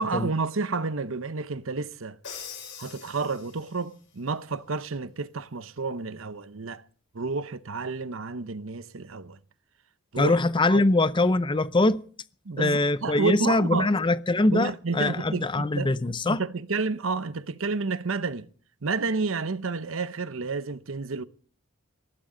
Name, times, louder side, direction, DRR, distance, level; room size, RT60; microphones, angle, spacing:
voice 1, 0.0-2.2 2.8-6.8 7.1-9.4 10.1-10.4 10.7-10.8 12.4-13.9 14.5-15.9 16.2-18.5 18.8-21.2, right 4 dB, 70° right, 0.8 m, -30 dB
Crash cymbal, 2.2-3.9, left 6 dB, 60° left, 7.4 m, -42 dB
voice 2, 10.2-12.0 12.6-16.4, left 2 dB, 25° left, 0.6 m, -23 dB
19.0 x 16.0 x 3.9 m
head